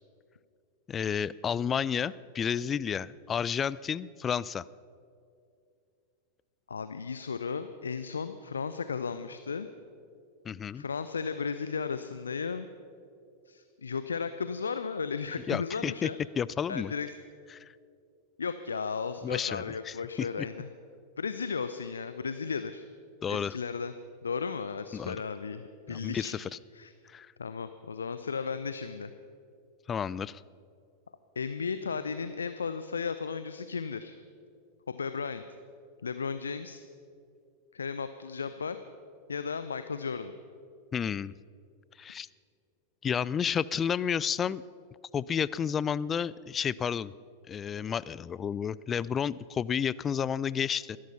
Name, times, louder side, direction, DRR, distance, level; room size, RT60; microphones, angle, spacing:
voice 1, 0.9-4.6 10.4-10.8 15.5-16.1 16.4-16.9 17.5-17.6 19.2-20.3 23.2-23.6 24.9-25.2 25.9-26.5 27.1-27.3 29.9-30.4 40.9-41.3 42.0-42.3 43.0-44.6 45.1-47.1 47.5-51.0, left 7 dB, 25° left, 20 dB, 0.4 m, -31 dB
voice 2, 6.7-9.7 10.7-12.7 13.5-16.2 16.7-17.1 18.4-20.7 21.2-22.9 23.3-23.9 24.2-26.4 26.7-26.9 27.4-29.1 31.4-34.2 35.0-35.4 36.0-36.8 37.7-38.8 39.3-40.3, left 5 dB, 70° left, 11 dB, 0.6 m, -35 dB
21.0 x 11.5 x 5.7 m, 2.4 s
figure-of-eight pair, 90°, 0 cm